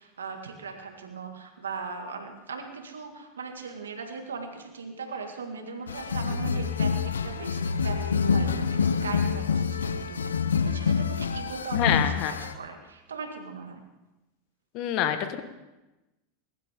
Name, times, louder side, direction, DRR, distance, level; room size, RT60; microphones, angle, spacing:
voice 1, 0.0-10.3 10.6-13.8, right 4 dB, 85° right, 4 dB, 2.0 m, -39 dB
sound 1, 5.9-12.6, left 5 dB, 90° left, 0.7 m, -27 dB
voice 2, 11.7-12.3 14.7-15.4, left 10 dB, 55° left, 9 dB, 1.4 m, -26 dB
21.0 x 12.0 x 3.7 m, 1.0 s
hypercardioid pair, 95°, 0 cm